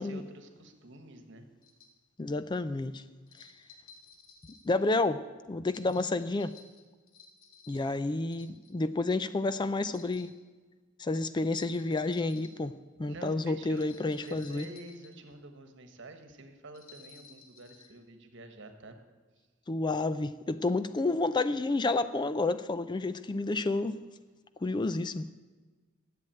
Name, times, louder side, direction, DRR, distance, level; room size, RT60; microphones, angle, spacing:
voice 1, 0.0-1.5 13.0-13.9 14.2-19.0, right 2 dB, 65° right, 1.4 m, -48 dB
sound 1, 1.6-1.9 3.3-4.8 5.7-8.0 8.3-8.9 9.8-10.4 11.4-12.6 13.6-15.3 16.7-17.9, left 5 dB, 85° left, 2.2 m, -55 dB
voice 2, 2.2-3.0 3.4-3.5 4.6-5.2 5.5-6.5 7.7-10.3 11.0-14.7 19.7-23.9 24.6-25.3, left 2 dB, 20° left, 0.4 m, -30 dB
11.0 x 7.8 x 9.0 m
head